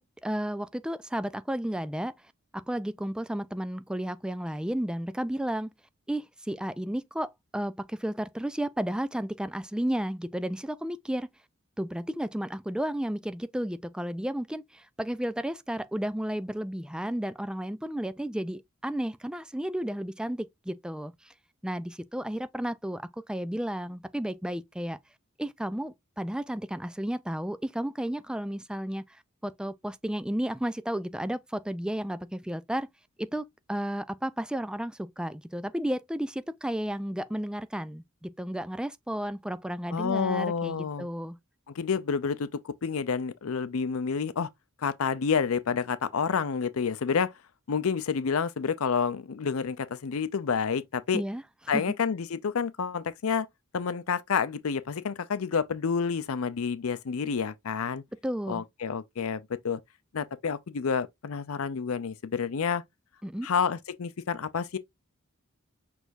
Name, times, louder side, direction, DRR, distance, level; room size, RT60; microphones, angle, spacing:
voice 1, 0.0-2.1 2.5-5.7 6.1-11.3 11.8-21.3 21.6-25.0 25.4-29.0 29.4-32.9 33.2-41.4 51.1-51.4 51.7-51.9 58.2-58.7 63.2-63.5, right 1 dB, 5° right, 0.3 m, -33 dB
voice 2, 39.9-41.1 41.8-44.5 44.8-47.3 47.7-51.2 51.7-53.5 53.7-58.0 58.5-59.8 60.1-62.8 63.4-64.8, left 6 dB, 85° left, 0.5 m, -29 dB
6.3 x 3.4 x 2.5 m
head